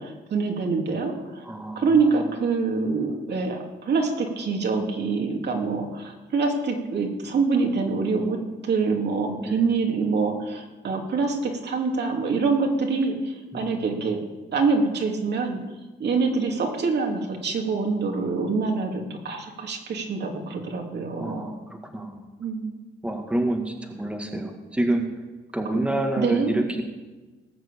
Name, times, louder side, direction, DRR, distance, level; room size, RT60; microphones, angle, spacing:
voice 1, 0.0-1.4 1.8-8.4 8.6-14.2 14.5-15.6 16.0-21.5 22.4-22.7 26.2-26.6, right 4 dB, 60° right, 1 dB, 3.0 m, -25 dB
voice 2, 1.4-2.1 9.4-9.6 13.5-14.1 21.2-22.2 23.0-25.1 25.5-26.8, right 1 dB, 5° right, 2 dB, 2.0 m, -28 dB
19.0 x 6.4 x 8.5 m, 1.2 s
cardioid pair, 90°, 20 cm